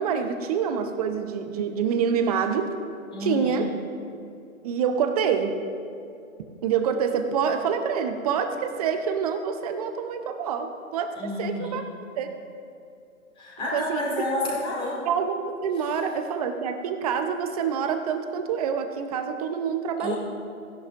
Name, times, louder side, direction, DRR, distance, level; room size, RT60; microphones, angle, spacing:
voice 1, 0.0-2.7 3.2-3.7 4.6-5.5 6.6-11.8 12.2-12.3 13.7-14.0 15.0-20.1, right 7 dB, 30° right, 7 dB, 0.7 m, -26 dB
voice 2, 3.1-3.7 11.2-11.8 13.4-15.0 20.0-20.2, left 2 dB, 10° left, -5 dB, 2.5 m, -30 dB
16.0 x 10.5 x 2.6 m, 2.5 s
figure-of-eight pair, 135°, 41 cm